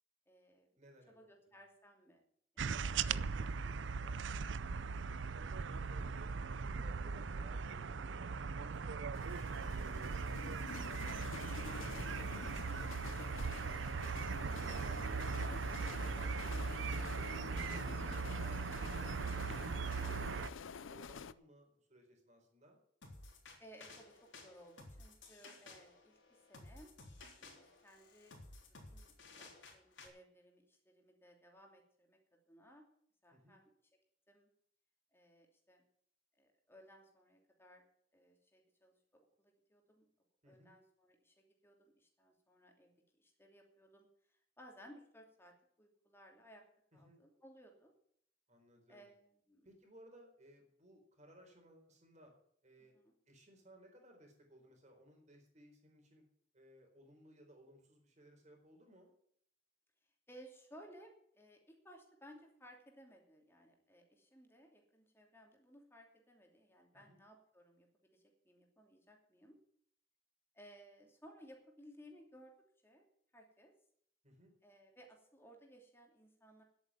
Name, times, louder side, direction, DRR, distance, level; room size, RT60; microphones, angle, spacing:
voice 1, 0.3-0.7 1.1-2.2 2.5-2.7 2.9-4.6 23.6-26.9 27.3-28.4 28.6-32.2 32.5-32.8 33.2-33.7 34.3-34.5 35.1-35.8 36.4-37.8 38.1-40.1 40.4-46.6 46.9-47.9 48.9-49.7 52.9-53.1 60.3-69.6 70.5-72.5 72.8-73.1 73.3-73.7 74.6-76.6, equal, 10° left, 2 dB, 2.9 m, -61 dB
voice 2, 0.8-1.1 4.9-5.5 6.0-6.3 6.7-9.1 9.5-10.0 10.5-11.0 11.3-15.2 19.4-22.8 33.3-33.6 40.4-40.7 46.9-47.2 48.5-49.1 49.6-52.3 52.6-52.9 53.3-56.2 56.5-59.1 66.9-67.2 74.2-74.6, equal, 35° right, 2 dB, 4.3 m, -62 dB
sound 1, 2.6-20.5, right 5 dB, 70° right, 0.5 m, -39 dB
sound 2, 9.1-21.3, left 5 dB, 90° left, 0.6 m, -48 dB
sound 3, 23.0-30.1, left 3 dB, 70° left, 3.7 m, -56 dB
11.0 x 8.8 x 9.8 m, 0.65 s
head